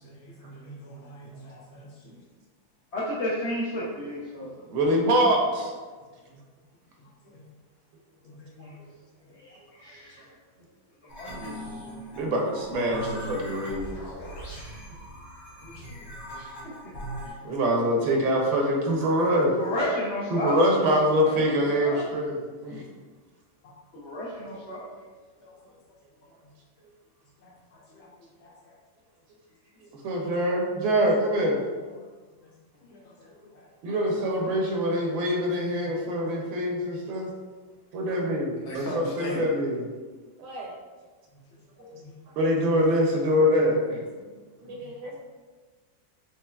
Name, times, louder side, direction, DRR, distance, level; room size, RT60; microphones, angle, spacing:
voice 1, 0.0-2.1 4.4-4.5 6.2-6.4 7.2-7.5 8.2-8.7 15.6-16.1 23.6-23.7 25.4-25.5 27.4-28.1 28.4-28.8 31.8-31.9 32.4-32.5 32.9-34.6 37.2-37.3 38.6-39.4 41.3-41.4 41.8-42.1 43.7-43.8 44.2-45.2, left 2 dB, 90° left, -4 dB, 1.7 m, -43 dB
voice 2, 2.9-4.5 8.6-8.7 9.3-10.3 11.1-11.8 12.1-12.2 16.3-16.5 19.6-20.6 21.2-21.4 21.8-22.0 23.9-24.8 34.4-34.5, left 1 dB, 70° left, -8 dB, 0.6 m, -32 dB
voice 3, 4.7-5.7 12.2-14.0 17.4-19.5 20.3-22.8 30.0-31.6 33.8-37.3 37.9-39.9 40.4-40.7 42.4-44.0 44.6-45.1, equal, 80° right, 0 dB, 1.4 m, -24 dB
sound 1, 11.1-17.3, equal, 45° left, 1.0 m, -39 dB
4.4 x 3.0 x 2.3 m, 1.4 s
omnidirectional pair, 2.1 m